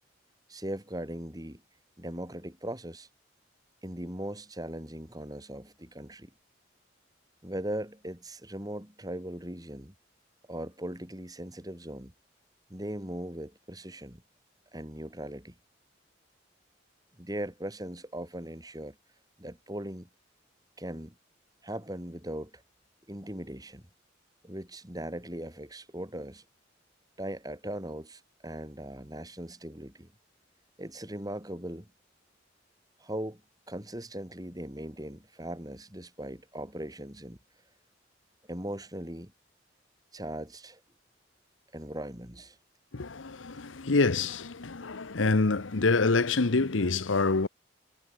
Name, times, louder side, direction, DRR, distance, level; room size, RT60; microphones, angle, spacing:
voice 1, 0.5-1.6 2.0-3.1 3.8-6.3 7.4-9.9 10.5-12.1 12.7-14.2 14.7-15.6 17.2-19.0 19.4-20.1 20.8-21.1 21.6-22.6 23.1-23.9 24.4-26.4 27.2-30.1 30.8-31.9 33.0-33.4 33.7-37.4 38.5-39.3 40.1-40.8 41.7-42.6, right 1 dB, 20° right, 4.5 m, -39 dB
voice 2, 42.9-47.5, left 3 dB, 85° left, 1.0 m, -26 dB
head